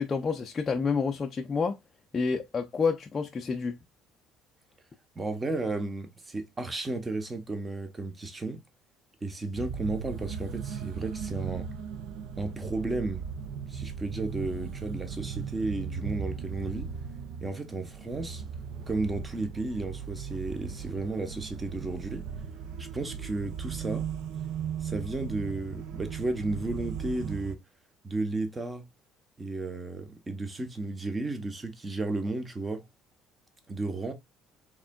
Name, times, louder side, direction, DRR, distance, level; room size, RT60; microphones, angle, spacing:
voice 1, 0.0-1.8 2.1-3.8, left 5 dB, 25° left, 0.4 m, -29 dB
voice 2, 5.2-8.6 9.2-11.7 12.4-13.3 13.7-16.9 17.4-18.4 18.9-22.3 22.8-24.1 24.8-27.6 28.0-28.8 29.4-32.8 33.7-34.1, right 2 dB, 15° right, 0.9 m, -33 dB
sound 1, 9.5-27.6, right 7 dB, 70° right, 0.6 m, -37 dB
4.7 x 3.6 x 2.2 m
cardioid pair, 160°, 0 cm